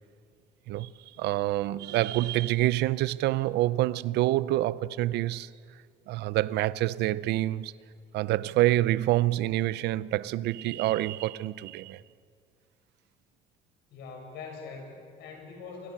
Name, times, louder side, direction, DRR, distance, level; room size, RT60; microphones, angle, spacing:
voice 1, 1.2-5.5 6.1-7.7 8.1-12.0, right 16 dB, 80° right, 0.7 m, -27 dB
voice 2, 13.9-15.9, left 4 dB, 80° left, 7.6 m, -43 dB
27.0 x 25.0 x 7.5 m
cardioid pair, 110°, 17 cm